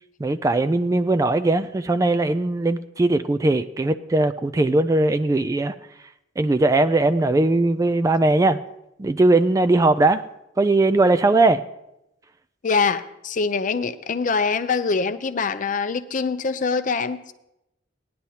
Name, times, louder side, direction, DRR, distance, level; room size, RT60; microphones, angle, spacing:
voice 1, 0.2-5.7 6.4-8.6 9.0-10.2 10.6-11.6, right 2 dB, 20° right, 12 dB, 0.3 m, -19 dB
voice 2, 12.6-17.3, left 4 dB, 45° left, 11 dB, 0.5 m, -24 dB
18.0 x 10.5 x 2.8 m, 0.86 s
head